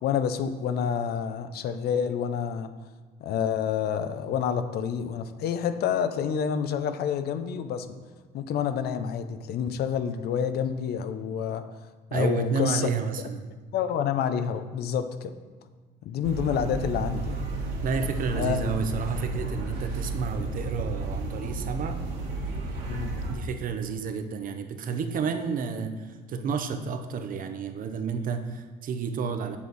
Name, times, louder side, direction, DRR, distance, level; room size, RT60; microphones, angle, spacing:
voice 1, 0.0-2.7 3.2-7.9 8.3-11.6 12.1-12.9 13.7-15.3 16.1-17.4 18.3-18.6 22.9-23.1, left 8 dB, 70° left, 10 dB, 0.6 m, -28 dB
voice 2, 12.1-13.5 17.8-22.0 23.3-29.6, right 5 dB, 55° right, 7 dB, 0.8 m, -30 dB
sound 1, 16.2-23.4, right 2 dB, 80° right, 1.8 m, -32 dB
7.4 x 6.2 x 4.1 m, 1.4 s
cardioid pair, 110°, 17 cm